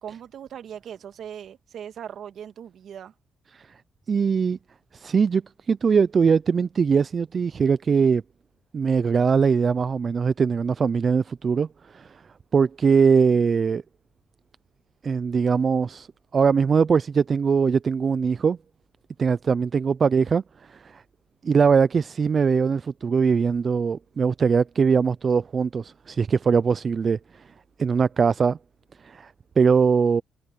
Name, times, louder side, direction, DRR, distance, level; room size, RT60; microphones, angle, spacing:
voice 1, 0.0-3.1, right 9 dB, 65° right, 2.0 m, -39 dB
voice 2, 4.1-4.6 4.9-5.4 5.7-8.2 8.7-12.2 12.5-13.8 15.0-16.1 16.3-18.6 19.2-20.4 20.7-21.0 21.4-27.4 27.8-28.6 29.0-30.2, right 6 dB, 45° right, 0.4 m, -21 dB
cardioid pair, 90°, 0 cm